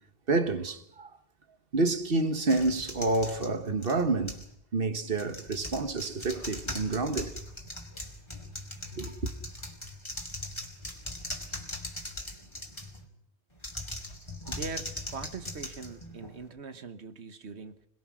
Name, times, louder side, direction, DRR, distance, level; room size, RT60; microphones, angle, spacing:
voice 1, 0.3-1.1 1.7-4.4 4.7-7.4 8.9-9.3, right 3 dB, 60° right, 1.5 m, -28 dB
sound 1, 2.5-4.5 5.1-13.0 13.6-16.5, left 1 dB, 25° left, 2.9 m, -40 dB
voice 2, 14.5-17.9, right 4 dB, 90° right, 1.5 m, -41 dB
26.5 x 20.5 x 6.2 m
omnidirectional pair, 1.1 m